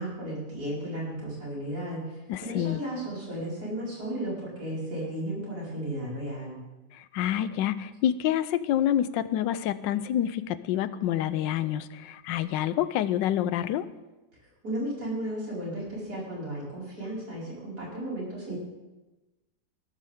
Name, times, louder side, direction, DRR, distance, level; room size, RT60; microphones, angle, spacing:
voice 1, 0.0-6.6 14.4-18.6, right 1 dB, 60° right, -6 dB, 5.9 m, -34 dB
voice 2, 2.3-2.8 7.1-13.9, left 11 dB, 90° left, 15 dB, 1.3 m, -27 dB
17.0 x 13.0 x 3.7 m, 1.1 s
omnidirectional pair, 1.9 m